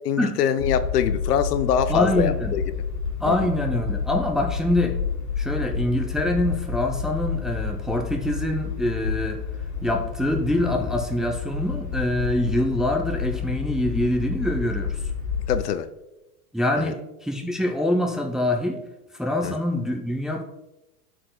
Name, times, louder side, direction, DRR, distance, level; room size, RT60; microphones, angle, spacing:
voice 1, 0.0-2.6 3.3-3.5 15.5-15.9 16.8-16.9 19.4-19.6, left 8 dB, 80° left, 11 dB, 0.7 m, -24 dB
sound 1, 0.6-15.6, left 6 dB, 40° left, 2.4 m, -29 dB
voice 2, 1.9-2.5 3.2-5.0 5.4-9.4 9.8-15.0 16.5-18.8 19.2-20.4, left 1 dB, ahead, 2 dB, 0.5 m, -25 dB
12.5 x 4.5 x 2.2 m, 0.95 s
hypercardioid pair, 100°, 46 cm